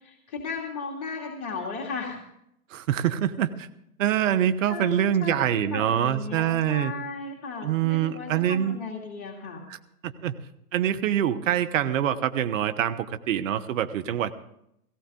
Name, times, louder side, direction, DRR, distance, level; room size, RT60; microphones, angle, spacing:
voice 1, 0.0-2.2 4.7-9.6, left 4 dB, 40° left, 0 dB, 2.7 m, -35 dB
voice 2, 2.7-3.7 4.0-6.9 7.6-8.8 9.7-9.8 10.0-10.3 10.7-14.3, right 10 dB, 55° right, 10 dB, 1.2 m, -25 dB
18.0 x 16.5 x 3.9 m, 0.77 s
hypercardioid pair, 115°, 45 cm